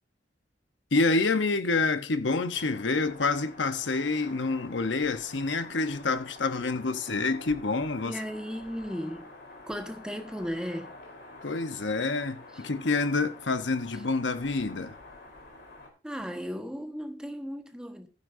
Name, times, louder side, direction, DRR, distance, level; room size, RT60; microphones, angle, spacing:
voice 1, 0.9-8.1 11.4-14.9, left 3 dB, 80° left, 1.0 m, -27 dB
sound 1, 2.5-15.9, left 2 dB, 60° left, 4.0 m, -48 dB
voice 2, 8.0-9.3 9.7-11.0 12.5-12.6 16.0-18.1, equal, 5° right, 1.4 m, -36 dB
15.0 x 9.9 x 2.7 m
head